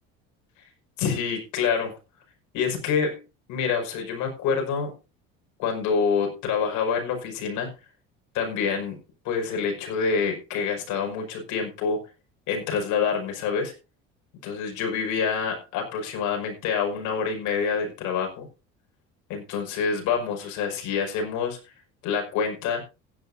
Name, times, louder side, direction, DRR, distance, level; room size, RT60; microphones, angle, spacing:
voice 1, 1.0-2.0 2.5-3.2 3.5-4.9 5.6-7.7 8.3-9.0 9.2-12.0 12.5-13.7 14.4-18.5 19.3-21.7 22.0-22.8, left 6 dB, 70° left, 3 dB, 5.7 m, -27 dB
16.5 x 11.0 x 2.7 m, 0.28 s
supercardioid pair, 85°, 30 cm